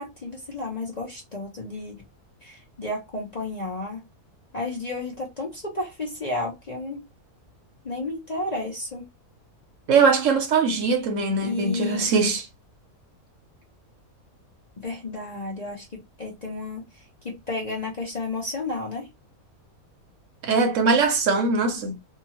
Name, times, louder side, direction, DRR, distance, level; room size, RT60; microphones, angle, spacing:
voice 1, 0.0-2.0 2.4-4.0 4.5-7.0 7.8-9.1 11.4-12.1 14.8-15.9 16.2-16.9 17.2-19.1, left 2 dB, 35° left, 0.7 m, -32 dB
voice 2, 9.9-12.5 20.4-22.0, right 4 dB, 65° right, 1.0 m, -21 dB
2.8 x 2.4 x 2.9 m
omnidirectional pair, 1.5 m